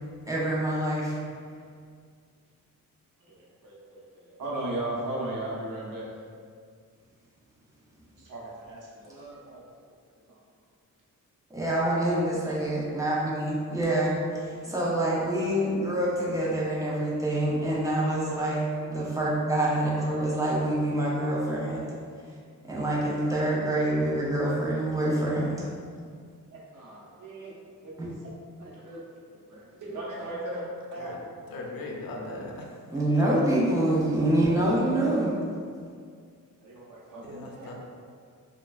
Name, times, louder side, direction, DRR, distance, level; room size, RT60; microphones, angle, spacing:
voice 1, 0.3-1.2 11.5-18.6 18.9-21.9 22.7-25.6 28.0-28.1 32.9-35.4, right 1 dB, 10° right, -6 dB, 0.5 m, -26 dB
voice 2, 3.2-6.1 8.2-9.6 10.3-10.4 12.4-12.5 18.7-18.9 26.5-27.5 27.8-28.3 28.6-29.0 29.3-30.6 30.9-31.1 36.6-37.7, right 1 dB, 65° right, -5 dB, 0.7 m, -37 dB
voice 3, 31.5-33.4 37.2-37.7, left 2 dB, 85° left, -1 dB, 0.5 m, -39 dB
3.2 x 2.2 x 2.3 m, 2.1 s
wide cardioid pair, 130°, 34 cm